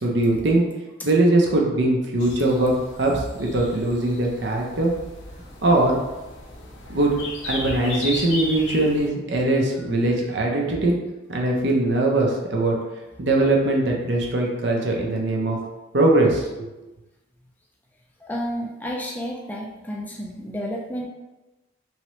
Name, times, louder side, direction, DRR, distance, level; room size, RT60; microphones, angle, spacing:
voice 1, 0.0-0.6 1.0-2.7 3.0-4.9 5.6-6.0 6.9-7.1 7.4-10.9 11.3-12.8 13.2-15.6 15.9-16.7, right 2 dB, 65° right, -1 dB, 0.6 m, -21 dB
sound 1, 2.2-9.1, left 2 dB, 80° left, 0.7 m, -36 dB
voice 2, 18.2-21.1, equal, 10° left, -2 dB, 0.3 m, -31 dB
3.0 x 2.8 x 3.0 m, 1.1 s
head